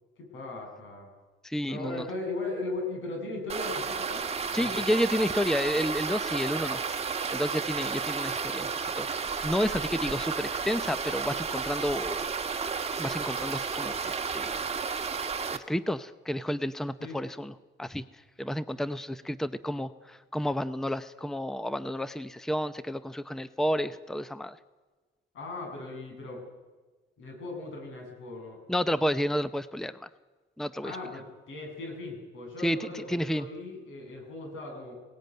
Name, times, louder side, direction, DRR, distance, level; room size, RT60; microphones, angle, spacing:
voice 1, 0.2-1.1 1.7-4.9 17.0-17.2 25.3-26.4 27.2-28.6 30.8-34.9, left 2 dB, 80° left, 2 dB, 7.5 m, -38 dB
voice 2, 1.4-2.1 4.5-6.9 7.3-8.7 9.0-12.3 12.6-12.7 13.0-14.6 15.5-24.6 28.7-30.1 30.6-31.0 32.6-33.5, equal, ahead, 14 dB, 0.7 m, -31 dB
sound 1, 3.5-15.6, right 5 dB, 30° right, 1.6 m, -32 dB
20.0 x 18.0 x 9.3 m, 1.3 s
cardioid pair, 90°, 20 cm